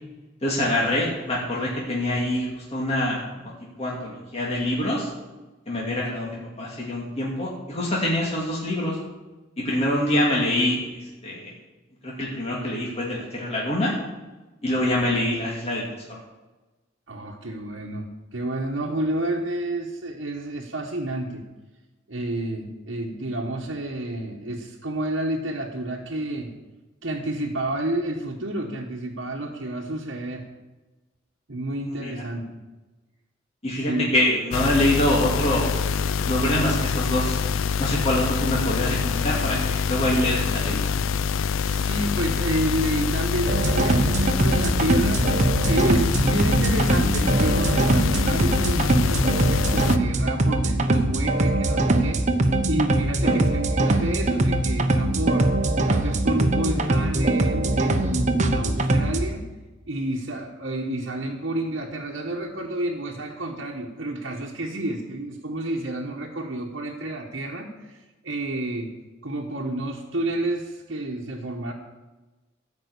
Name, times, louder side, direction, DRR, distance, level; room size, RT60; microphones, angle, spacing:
voice 1, 0.4-3.5 3.8-5.1 5.7-8.9 9.6-11.5 12.0-13.9 14.6-16.2 31.8-32.1 33.6-37.3 37.8-40.9 46.2-46.4 53.2-53.4, left 1 dB, 30° left, -5 dB, 2.3 m, -25 dB
voice 2, 17.1-21.5 22.1-26.5 27.0-30.4 31.5-32.6 33.7-34.1 41.6-45.3 45.6-52.2 52.6-55.5 55.8-59.5 59.8-68.9 69.2-71.7, right 1 dB, 65° right, -3 dB, 1.3 m, -30 dB
sound 1, 34.5-50.0, left 6 dB, 85° left, 0.4 m, -25 dB
sound 2, 43.5-59.2, right 2 dB, 35° right, 0.9 m, -22 dB
14.0 x 5.4 x 8.3 m, 1.2 s
head